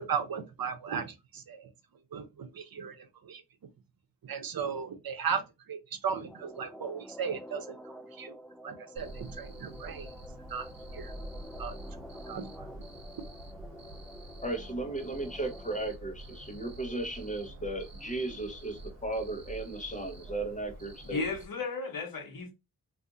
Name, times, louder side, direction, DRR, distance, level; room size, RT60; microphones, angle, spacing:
voice 1, 0.0-1.7 2.1-3.0 3.2-3.4 4.2-5.4 5.7-7.7 8.2-8.3 8.6-10.1 10.5-10.7 10.9-11.1 11.6-11.7 12.3-12.7, right 6 dB, 90° right, 0.7 m, -36 dB
sound 1, 6.3-15.8, equal, 5° left, 0.3 m, -48 dB
Cricket, 9.0-21.5, right 1 dB, 50° right, 0.9 m, -47 dB
voice 2, 14.4-21.2, right 2 dB, 20° left, 0.9 m, -35 dB
voice 3, 21.1-22.5, left 4 dB, 80° left, 0.9 m, -34 dB
2.6 x 2.5 x 3.7 m
wide cardioid pair, 105°, 34 cm